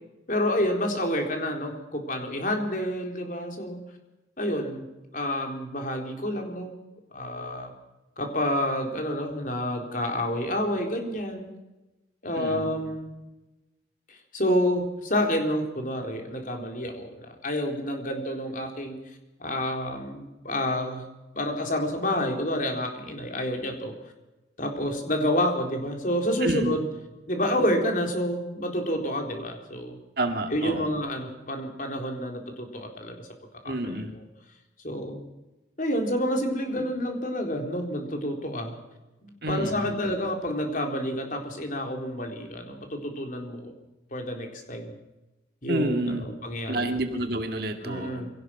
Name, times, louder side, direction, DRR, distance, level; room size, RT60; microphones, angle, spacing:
voice 1, 0.3-3.8 4.4-4.9 5.1-6.7 7.1-7.7 8.2-11.5 12.2-13.1 14.3-19.0 19.4-21.1 21.3-23.9 24.6-26.9 27.3-30.0 30.5-33.3 33.6-34.2 34.8-35.2 35.8-38.8 39.2-43.7 44.1-44.9 45.6-46.9 47.8-48.3, left 1 dB, 45° left, 3 dB, 4.1 m, -29 dB
voice 2, 12.4-12.7 26.4-26.8 30.2-30.9 33.6-34.1 39.4-40.0 45.7-46.2 46.7-48.2, right 1 dB, 55° right, 6 dB, 2.1 m, -29 dB
24.5 x 18.0 x 6.0 m, 1.0 s
head